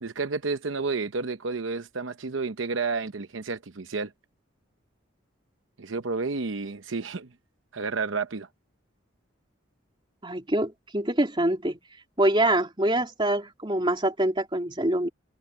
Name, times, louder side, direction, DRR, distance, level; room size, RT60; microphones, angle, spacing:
voice 1, 0.0-4.1 5.8-7.3 7.7-8.5, right 4 dB, 75° right, 0.8 m, -30 dB
voice 2, 10.2-11.8 12.2-15.1, right 1 dB, 25° right, 2.8 m, -25 dB
head